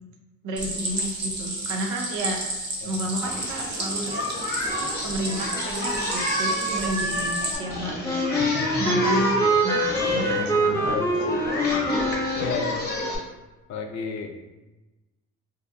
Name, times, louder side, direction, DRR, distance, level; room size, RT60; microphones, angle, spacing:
voice 1, 0.4-2.4 2.8-4.2 5.0-9.3 9.6-11.0, right 1 dB, 85° right, 2 dB, 0.6 m, -31 dB
Stream, 0.6-7.6, right 1 dB, 35° right, 0.8 m, -32 dB
Singing, 3.2-13.2, equal, 30° left, 0.7 m, -29 dB
Wind instrument woodwind instrument, 8.0-12.8, equal, 10° left, 0.3 m, -25 dB
voice 2, 8.4-9.0 9.6-9.7 10.1-11.1 12.3-12.9 13.7-14.3, left 4 dB, 65° left, 4 dB, 0.5 m, -33 dB
2.7 x 2.3 x 2.5 m, 1.1 s
cardioid pair, 90°, 30 cm